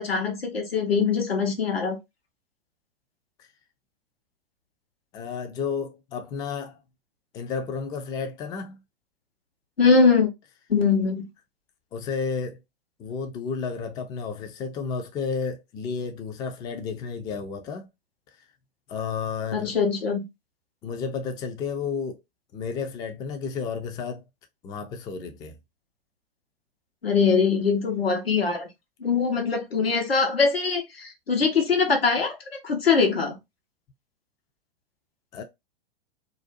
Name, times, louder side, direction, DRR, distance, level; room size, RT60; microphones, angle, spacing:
voice 1, 0.0-2.0 9.8-10.3 10.7-11.3 19.5-20.2 27.0-28.7 29.0-33.4, left 5 dB, 85° left, 0.9 m, -22 dB
voice 2, 5.1-6.8 7.3-8.8 11.9-12.6 13.0-17.9 18.9-19.7 20.8-22.2 22.5-24.2 24.6-25.6 35.3-35.4, left 5 dB, 15° left, 0.3 m, -32 dB
2.5 x 2.2 x 2.5 m
figure-of-eight pair, 105°, 29 cm